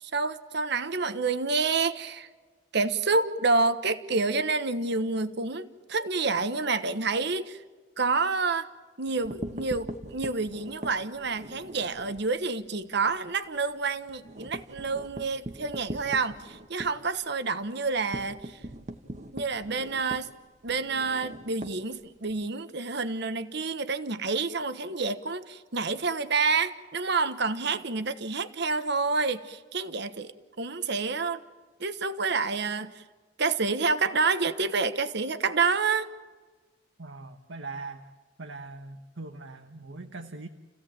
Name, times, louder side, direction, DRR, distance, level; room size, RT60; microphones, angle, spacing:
voice 1, 0.0-2.3 2.7-7.6 8.0-8.7 9.0-18.6 19.3-20.3 20.6-31.4 31.8-33.0 33.4-36.1, right 4 dB, 65° right, 11 dB, 1.3 m, -28 dB
sound 1, 9.1-12.3 12.7-12.8 13.1-13.2 13.6-22.4, right 1 dB, 40° right, 1.5 m, -41 dB
voice 2, 37.0-38.1 38.4-40.5, right 3 dB, 80° right, 6 dB, 1.3 m, -41 dB
30.0 x 16.5 x 8.9 m, 1.4 s
head